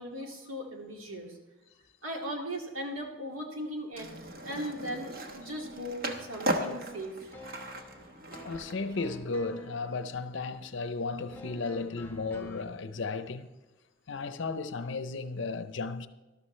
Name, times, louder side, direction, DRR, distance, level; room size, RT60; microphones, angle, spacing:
voice 1, 0.0-1.3 2.0-4.1 4.4-7.1, equal, 85° right, 2.1 m, -38 dB
Skateboard, 3.9-9.2, right 1 dB, 45° right, 1.1 m, -37 dB
sound 1, 6.0-12.6, left 1 dB, 10° left, 1.2 m, -50 dB
voice 2, 8.4-13.5 14.1-16.1, left 3 dB, 60° left, 0.6 m, -34 dB
13.0 x 12.0 x 3.2 m
head